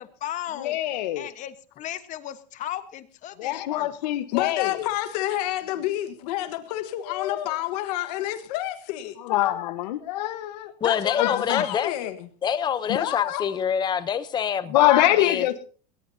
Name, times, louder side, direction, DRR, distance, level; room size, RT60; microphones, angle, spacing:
voice 1, 0.0-0.8 1.1-3.9, left 12 dB, 35° left, 1.2 m, -36 dB
voice 2, 0.6-1.3 3.4-4.9 7.1-7.5 9.2-10.7 11.2-11.8 14.7-15.7, left 15 dB, 90° left, 1.4 m, -24 dB
voice 3, 4.3-9.2 10.8-12.3 12.9-13.6, left 14 dB, 75° left, 1.5 m, -29 dB
voice 4, 10.8-11.9 12.4-15.5, left 8 dB, 20° left, 0.8 m, -26 dB
20.0 x 18.0 x 2.8 m
supercardioid pair, 145°, 21 cm